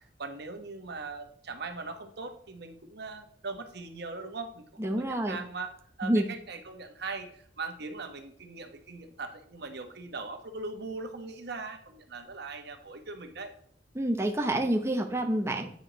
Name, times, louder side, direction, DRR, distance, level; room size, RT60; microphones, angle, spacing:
voice 1, 0.0-5.7 6.0-13.5, right 3 dB, 65° right, 6 dB, 1.1 m, -40 dB
voice 2, 4.8-5.4 6.0-6.3 13.9-15.7, right 1 dB, 15° right, 3 dB, 0.8 m, -28 dB
9.3 x 4.9 x 3.9 m, 0.63 s
head